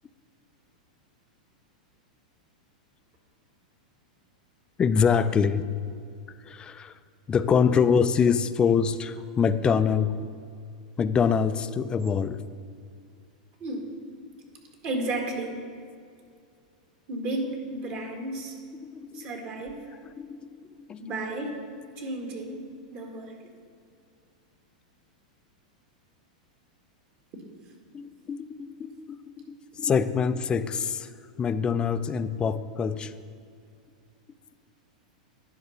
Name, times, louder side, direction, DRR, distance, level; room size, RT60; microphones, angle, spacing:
voice 1, 4.8-5.7 6.4-7.0 7.3-10.1 11.0-12.4 18.8-19.3 20.0-21.0 27.9-31.1 31.4-33.1, left 6 dB, 20° left, 13 dB, 0.3 m, -25 dB
voice 2, 14.8-15.6 17.1-18.6 19.1-19.8 21.0-21.6 22.0-23.4, right 2 dB, 40° right, 2 dB, 1.7 m, -33 dB
10.0 x 4.8 x 5.6 m, 2.3 s
hypercardioid pair, 115°, 4 cm